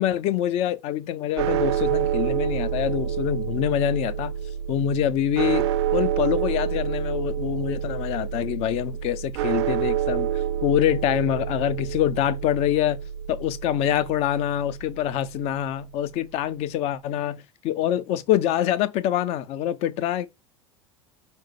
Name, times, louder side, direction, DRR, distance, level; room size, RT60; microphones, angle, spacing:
voice 1, 0.0-4.3 4.7-5.6 5.9-13.0 13.3-20.3, left 11 dB, 40° left, 0.5 m, -25 dB
sound 1, 1.4-15.6, right 10 dB, 55° right, 0.5 m, -28 dB
5.2 x 2.0 x 4.4 m
figure-of-eight pair, 75°, 16 cm